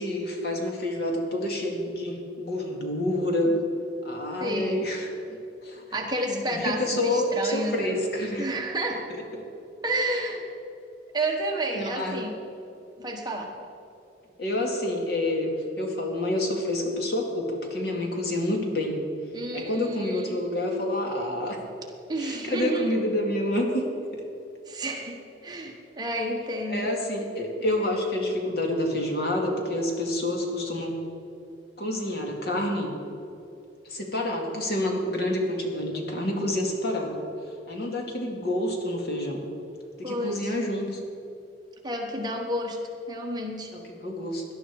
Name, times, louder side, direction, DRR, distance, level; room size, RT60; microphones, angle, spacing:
voice 1, 0.0-3.5 4.0-5.4 5.6-5.8 6.3-8.5 9.3-9.4 11.7-12.2 14.4-19.0 19.5-21.6 22.2-23.9 24.1-24.2 26.4-30.9 31.8-32.9 33.9-37.2 37.7-39.4 40.0-41.0 43.7-44.4, left 1 dB, 60° left, 0 dB, 2.4 m, -28 dB
voice 2, 4.4-4.8 5.9-8.0 8.4-9.0 9.8-10.5 11.1-12.4 13.0-13.5 19.3-20.4 22.1-23.0 24.7-26.9 40.0-40.5 41.8-42.8 43.1-43.7, right 1 dB, 25° right, 1 dB, 1.5 m, -30 dB
18.0 x 11.5 x 4.8 m, 2.7 s
head